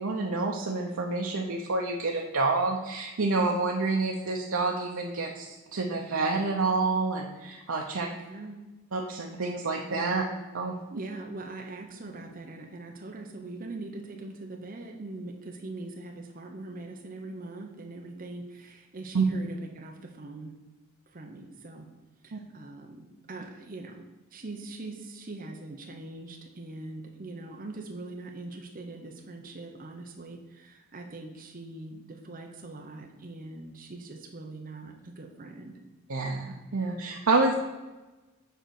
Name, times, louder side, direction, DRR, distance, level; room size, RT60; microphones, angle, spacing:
voice 1, 0.0-8.1 8.9-10.2 10.5-10.7 19.1-19.2 22.3-22.4 36.1-37.5, right 3 dB, 90° right, 0 dB, 0.7 m, -28 dB
voice 2, 8.1-8.6 10.9-20.5 21.1-21.9 22.2-24.0 24.3-35.8, right 2 dB, 40° right, 2 dB, 0.8 m, -42 dB
6.8 x 4.0 x 6.4 m, 1.1 s
head